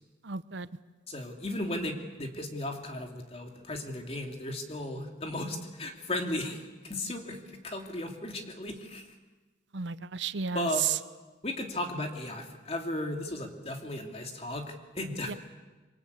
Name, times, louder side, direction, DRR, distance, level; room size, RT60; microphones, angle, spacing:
voice 1, 0.2-0.7 9.7-11.0 15.3-15.4, right 7 dB, 75° right, 14 dB, 0.8 m, -32 dB
voice 2, 1.1-6.6 6.8-7.4 7.6-9.0 10.5-10.8 11.4-15.4, left 1 dB, 30° left, 3 dB, 2.8 m, -35 dB
26.5 x 23.0 x 8.5 m, 1.2 s
head